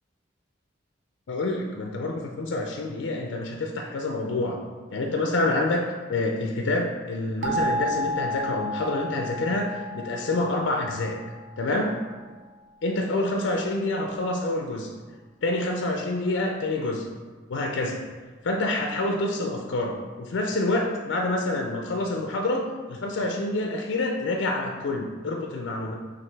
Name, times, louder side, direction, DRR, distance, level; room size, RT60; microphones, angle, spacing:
voice 1, 1.3-4.6 4.9-11.2 11.6-11.9 12.8-14.9 15.4-17.1 17.5-18.0 18.4-25.9, left 2 dB, 75° left, 2 dB, 0.4 m, -27 dB
sound 1, 7.4-12.1, equal, 85° right, 0.5 m, -32 dB
6.0 x 2.5 x 3.3 m, 1.4 s
head